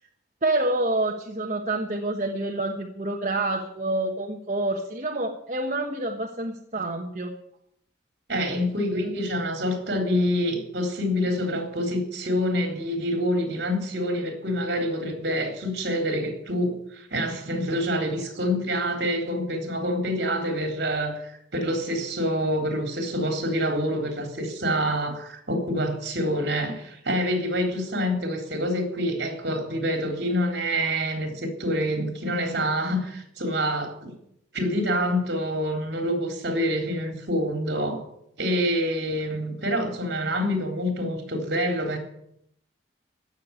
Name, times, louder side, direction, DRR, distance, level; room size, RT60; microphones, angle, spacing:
voice 1, 0.4-7.3, right 2 dB, 40° right, 1 dB, 1.2 m, -27 dB
voice 2, 8.3-34.1 34.5-38.0 38.4-42.0, equal, 60° right, 4 dB, 3.9 m, -26 dB
16.0 x 6.8 x 9.5 m, 0.73 s
head